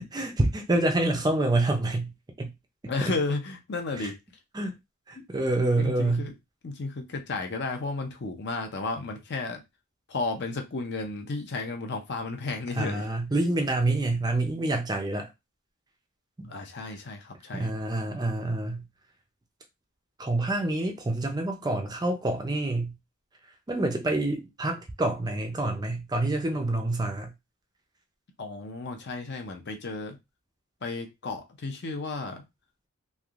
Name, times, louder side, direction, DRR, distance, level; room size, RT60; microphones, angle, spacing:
voice 1, 0.0-2.1 2.4-2.5 4.0-4.1 4.5-4.8 5.1-6.3 12.7-15.3 16.4-16.5 17.5-18.8 20.2-22.9 23.7-27.3, right 2 dB, 20° right, 0.4 m, -27 dB
voice 2, 2.9-4.2 5.8-6.3 6.6-9.6 10.1-13.0 16.5-17.7 28.4-30.2 30.8-32.4, left 3 dB, 50° left, 0.6 m, -33 dB
3.3 x 2.6 x 2.4 m
head